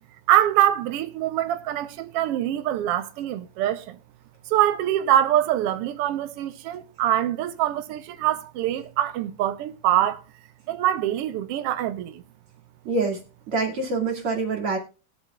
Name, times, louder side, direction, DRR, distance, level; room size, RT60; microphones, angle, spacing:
voice 1, 0.3-4.0 4.5-10.2 10.7-12.2, right 12 dB, 85° right, 1.3 m, -24 dB
voice 2, 12.8-13.2 13.5-14.8, right 3 dB, 45° right, 3.1 m, -25 dB
20.5 x 7.9 x 2.4 m
omnidirectional pair, 3.6 m